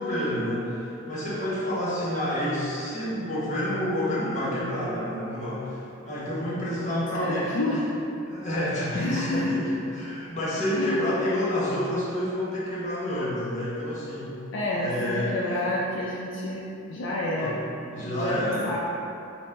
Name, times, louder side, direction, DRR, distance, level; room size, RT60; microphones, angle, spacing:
voice 1, 0.0-7.8 8.3-14.3 14.8-15.7 17.4-17.6 17.9-18.8, left 1 dB, 40° left, -7 dB, 1.0 m, -29 dB
voice 2, 6.7-7.8 8.9-9.6 10.7-11.0 14.5-16.6 16.9-17.6 18.0-18.8, left 1 dB, 70° left, -5 dB, 0.4 m, -29 dB
4.4 x 2.1 x 4.1 m, 2.7 s
head